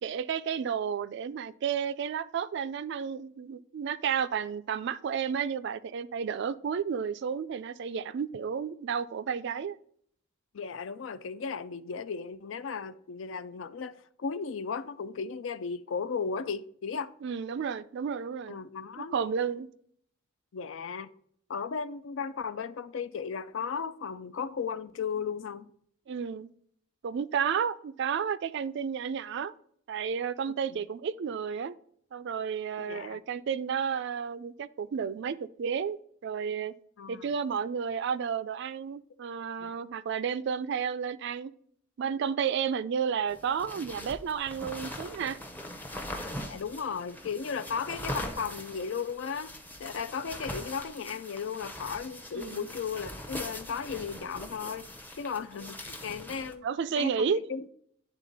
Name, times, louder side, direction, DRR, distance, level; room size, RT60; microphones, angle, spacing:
voice 1, 0.0-9.8 17.2-18.6 19.0-19.7 26.1-26.5 27.0-29.5 29.9-31.7 32.1-36.7 37.1-41.5 42.0-45.4 52.3-52.7 56.6-57.4, right 7 dB, 60° right, 0.3 m, -32 dB
voice 2, 10.5-17.1 18.5-19.1 20.5-21.1 21.5-25.7 30.7-30.8 32.8-33.2 37.0-37.3 39.6-39.8 46.2-49.5 49.8-54.9 55.2-56.7 57.0-57.7, left 6 dB, 65° left, 0.4 m, -35 dB
sound 1, 43.3-56.5, left 1 dB, 10° left, 0.6 m, -41 dB
10.0 x 3.6 x 4.0 m
head